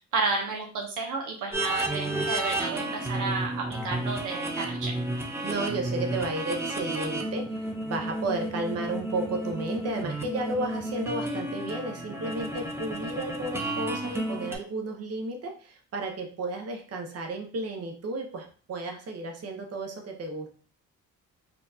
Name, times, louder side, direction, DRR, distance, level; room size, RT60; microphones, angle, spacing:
voice 1, 0.0-4.9, right 4 dB, 80° right, 1 dB, 0.8 m, -31 dB
sound 1, 1.5-14.6, right 1 dB, 10° right, 0.6 m, -32 dB
voice 2, 5.4-20.5, right 2 dB, 55° right, 3 dB, 0.9 m, -33 dB
4.2 x 2.4 x 2.7 m, 0.40 s
cardioid pair, 90°, 30 cm